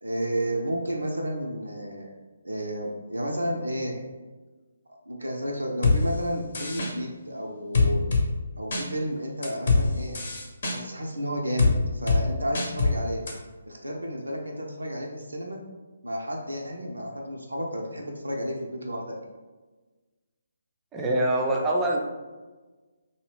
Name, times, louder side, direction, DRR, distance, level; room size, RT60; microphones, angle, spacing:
voice 1, 0.0-2.1 2.4-4.0 5.1-8.0 8.6-10.2 10.7-13.2 13.6-15.6 16.0-19.2, equal, 75° right, 0 dB, 0.5 m, -32 dB
sound 1, 5.8-6.0 6.5-6.9 7.7-8.2 8.7-8.8 9.4-9.8 10.1-10.8 11.6-11.7 12.1-12.2 12.5-12.9 13.3-13.4, left 4 dB, 50° left, 0.7 m, -22 dB
voice 2, 20.9-22.0, right 1 dB, 10° right, -1 dB, 0.4 m, -24 dB
2.7 x 2.3 x 3.3 m, 1.3 s
figure-of-eight pair, 140°, 0 cm